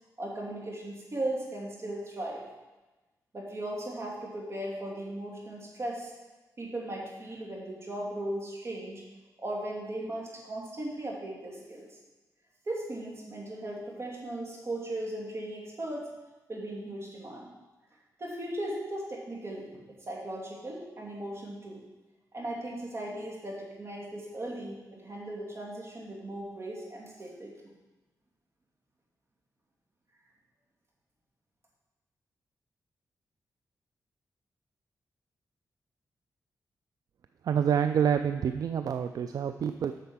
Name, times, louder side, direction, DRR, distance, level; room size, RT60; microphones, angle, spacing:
voice 1, 0.2-2.4 3.3-6.1 6.6-9.0 9.4-11.9 12.7-16.1 16.5-17.5 18.2-21.8 22.3-27.7, right 1 dB, 45° right, -2 dB, 2.6 m, -37 dB
voice 2, 37.5-39.9, right 8 dB, 65° right, 9 dB, 0.4 m, -27 dB
8.1 x 6.7 x 5.7 m, 1.1 s
cardioid pair, 95°, 7 cm